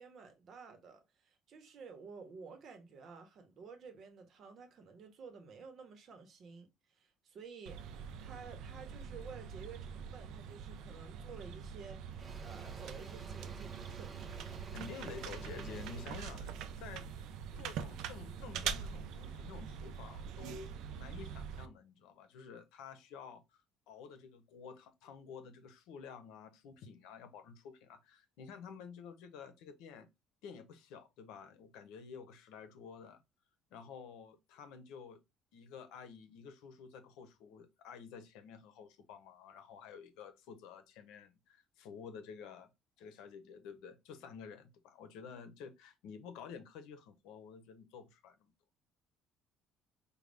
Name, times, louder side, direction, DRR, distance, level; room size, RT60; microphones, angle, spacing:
voice 1, 0.0-14.2, right 5 dB, 40° right, 0.9 m, -52 dB
sound 1, 7.7-21.7, right 7 dB, 70° right, 0.5 m, -44 dB
Engine / Drill, 11.2-11.5 11.8-17.9, right 3 dB, 15° right, 0.5 m, -54 dB
voice 2, 14.7-23.6 23.9-30.1 30.4-33.2 33.7-35.2 35.5-42.7 43.0-48.5, left 6 dB, 90° left, 0.8 m, -51 dB
5.1 x 2.3 x 3.4 m
cardioid pair, 160°, 0 cm